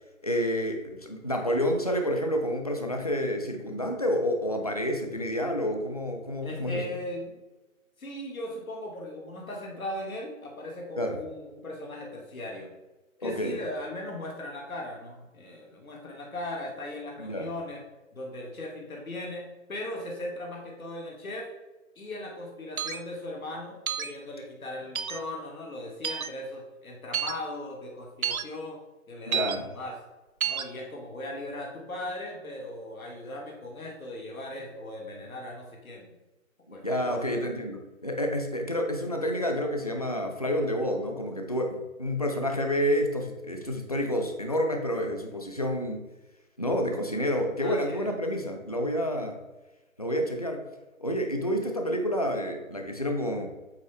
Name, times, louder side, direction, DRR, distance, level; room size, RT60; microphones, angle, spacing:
voice 1, 0.2-6.8 11.0-11.2 13.2-13.6 17.2-17.5 29.3-29.7 36.7-46.0 46.6-49.4 50.0-50.6 51.0-53.5, equal, 30° left, 3 dB, 0.5 m, -29 dB
voice 2, 6.4-7.4 8.0-12.7 13.2-17.8 18.1-21.5 22.0-28.8 29.1-30.0 30.4-36.2 36.7-37.5 47.6-48.1, left 1 dB, 80° left, -1 dB, 1.8 m, -38 dB
sound 1, 22.8-23.0 23.9-24.1 25.0-25.2 26.0-26.3 27.1-27.3 28.2-28.4 29.3-29.6 30.4-30.6, right 8 dB, 80° right, 0.8 m, -29 dB
8.2 x 4.4 x 3.3 m, 1.1 s
hypercardioid pair, 170°, 41 cm